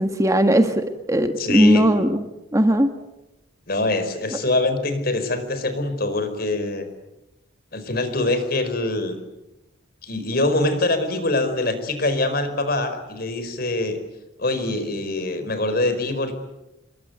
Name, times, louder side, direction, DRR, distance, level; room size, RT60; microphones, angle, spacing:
voice 1, 0.0-2.2 2.5-2.9, equal, 15° right, 7 dB, 1.6 m, -18 dB
voice 2, 1.4-1.9 3.7-6.9 7.7-9.2 10.0-14.0 14.4-16.3, left 2 dB, 50° left, 10 dB, 4.7 m, -24 dB
29.0 x 22.0 x 9.5 m, 0.95 s
head